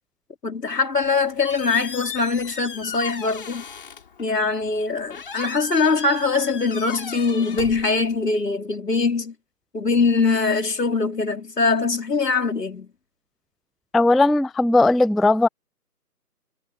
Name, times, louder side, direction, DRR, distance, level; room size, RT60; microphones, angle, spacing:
voice 1, 0.4-3.6 4.2-9.3 9.7-12.9, left 4 dB, 80° left, 4.6 m, -22 dB
Squeak, 0.9-8.4, left 6 dB, 35° left, 4.9 m, -38 dB
voice 2, 13.9-15.5, left 2 dB, ahead, 0.3 m, -17 dB
figure-of-eight pair, 170°, 47 cm